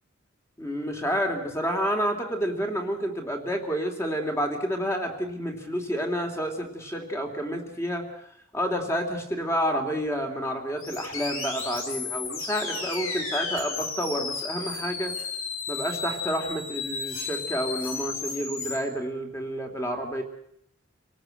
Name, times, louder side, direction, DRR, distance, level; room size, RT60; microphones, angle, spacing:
voice 1, 0.6-8.1 8.5-15.1 15.7-20.2, equal, 15° left, 4 dB, 2.9 m, -29 dB
sound 1, 10.8-18.8, left 4 dB, 85° left, 5.2 m, -33 dB
28.0 x 18.0 x 7.9 m, 0.72 s
head